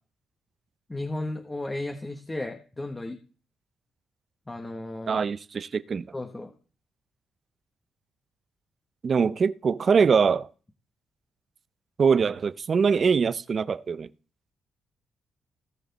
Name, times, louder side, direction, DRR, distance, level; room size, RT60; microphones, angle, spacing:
voice 1, 0.9-3.2 4.5-5.2 6.1-6.5, left 2 dB, 15° left, 0.9 m, -34 dB
voice 2, 5.1-6.1 9.0-10.5 12.0-14.1, right 5 dB, 35° right, 0.5 m, -23 dB
17.0 x 6.5 x 4.0 m
cardioid pair, 155°, 0 cm